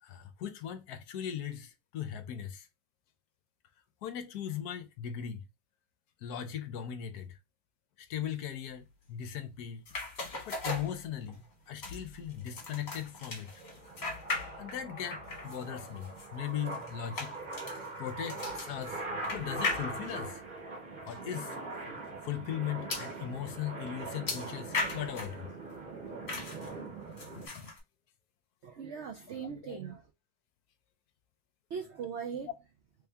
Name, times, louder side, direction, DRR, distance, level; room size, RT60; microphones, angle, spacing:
voice 1, 0.0-2.7 4.0-5.4 6.2-7.4 8.0-9.8 10.2-13.5 14.6-19.0 19.3-20.4 21.1-21.6 22.2-25.5 27.3-27.7 29.7-29.8, left 9 dB, 70° left, 1.1 m, -39 dB
sound 1, 9.9-11.5 11.8-14.8 15.1-20.3 21.1-21.2 21.5-21.6 22.9-23.1 24.3-25.4 26.3-26.7 27.2-27.8, left 3 dB, 40° left, 1.5 m, -38 dB
sound 2, 12.1-27.5, right 2 dB, 30° right, 1.5 m, -42 dB
voice 2, 28.6-30.1 31.7-32.5, right 6 dB, 80° right, 0.6 m, -39 dB
3.5 x 2.7 x 3.4 m
omnidirectional pair, 1.9 m